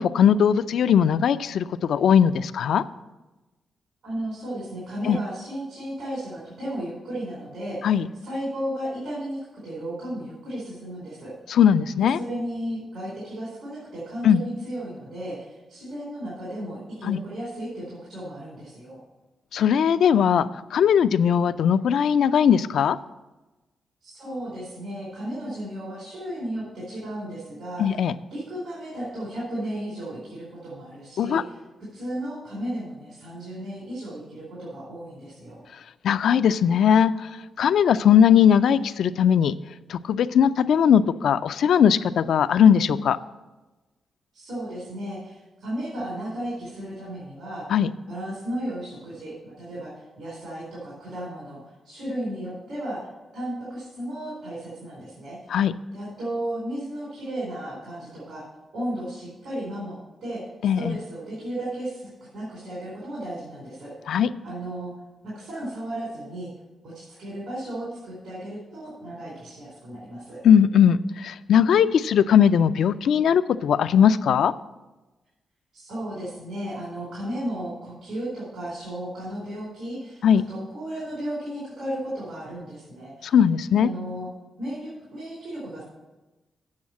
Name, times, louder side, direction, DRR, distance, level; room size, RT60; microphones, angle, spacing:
voice 1, 0.0-2.8 5.1-5.2 7.8-8.0 11.5-12.2 14.2-14.4 17.1-17.2 19.5-23.0 27.8-28.1 31.2-31.4 36.0-37.1 37.6-39.5 39.9-43.2 47.7-47.9 55.5-55.7 60.6-61.0 64.1-64.3 70.4-74.5 80.2-80.4 83.3-83.9, left 8 dB, 75° left, 13 dB, 0.3 m, -19 dB
voice 2, 4.0-7.9 8.2-11.6 12.0-19.0 24.0-31.6 31.9-35.6 44.3-47.7 48.1-51.6 51.8-55.5 55.9-58.5 58.7-63.9 64.4-64.9 65.2-66.5 66.8-70.4 75.7-83.4 83.7-84.3 84.6-85.8, right 1 dB, 80° right, -7 dB, 4.1 m, -34 dB
8.6 x 6.3 x 7.4 m, 1.1 s
cardioid pair, 125°, 0 cm